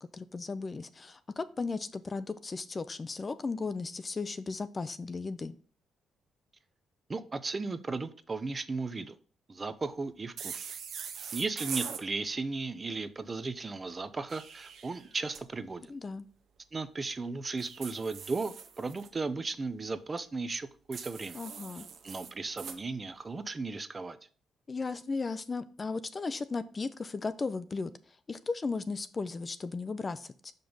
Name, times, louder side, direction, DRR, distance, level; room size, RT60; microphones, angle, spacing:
voice 1, 0.1-5.5 15.9-16.2 21.3-21.9 24.7-27.9 28.3-30.5, left 4 dB, 30° left, 12 dB, 0.5 m, -36 dB
voice 2, 7.1-9.2 9.5-10.6 11.3-15.9 16.7-21.4 22.0-24.2, right 3 dB, 30° right, 11 dB, 0.5 m, -36 dB
sound 1, 10.4-12.0 14.1-15.4 17.6-19.1 20.9-22.8, right 7 dB, 65° right, 0.7 m, -42 dB
5.7 x 5.2 x 3.9 m, 0.42 s
cardioid pair, 90°, 0 cm